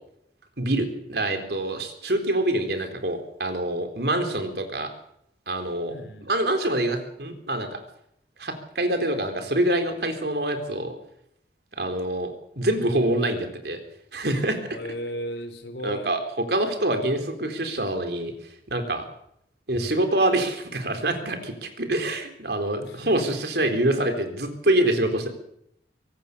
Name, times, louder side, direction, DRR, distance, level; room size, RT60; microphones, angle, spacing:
voice 1, 0.6-4.9 5.5-5.9 6.3-7.8 8.4-10.9 11.8-13.8 14.1-14.6 15.8-18.3 18.7-19.0 19.7-25.3, right 1 dB, 60° right, 6 dB, 4.0 m, -25 dB
voice 2, 5.9-6.3 14.7-16.1 22.8-23.3, equal, 70° left, 9 dB, 3.7 m, -35 dB
24.5 x 17.0 x 6.8 m, 0.74 s
head